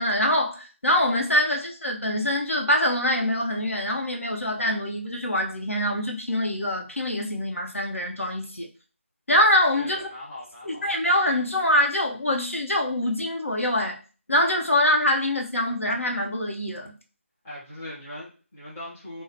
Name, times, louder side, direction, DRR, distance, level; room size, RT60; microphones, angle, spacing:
voice 1, 0.0-8.7 9.3-10.1 10.7-14.0 14.3-16.9, left 1 dB, 70° left, 0.8 m, -24 dB
voice 2, 9.8-10.9 17.4-19.2, left 1 dB, 10° left, 0.6 m, -40 dB
4.5 x 2.1 x 2.9 m
figure-of-eight pair, 165°, 7 cm